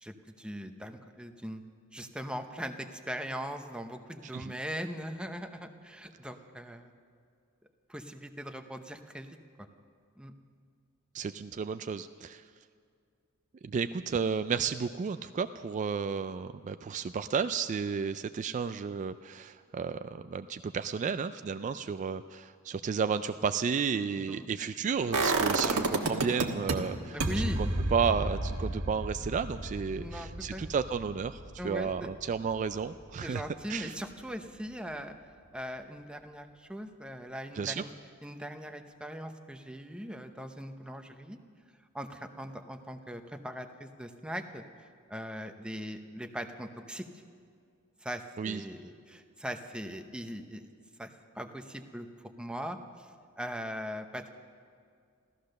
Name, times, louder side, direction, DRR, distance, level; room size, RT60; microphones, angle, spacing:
voice 1, 0.0-1.6 1.9-6.9 7.9-9.4 10.2-10.3 24.2-24.5 27.1-27.6 30.0-30.6 31.6-32.1 33.2-35.2 35.5-37.9 38.2-41.4 41.9-44.6 45.1-47.1 48.0-50.7 51.0-52.1 52.4-54.3, equal, 5° right, 6 dB, 0.8 m, -40 dB
voice 2, 11.1-12.4 13.6-33.4 33.7-33.9 37.6-37.8 48.4-48.6, right 6 dB, 35° right, 10 dB, 0.3 m, -32 dB
sound 1, 25.1-26.7 27.2-33.0 33.4-33.5, right 3 dB, 80° right, 1.4 m, -31 dB
15.0 x 14.0 x 6.5 m, 2.3 s
head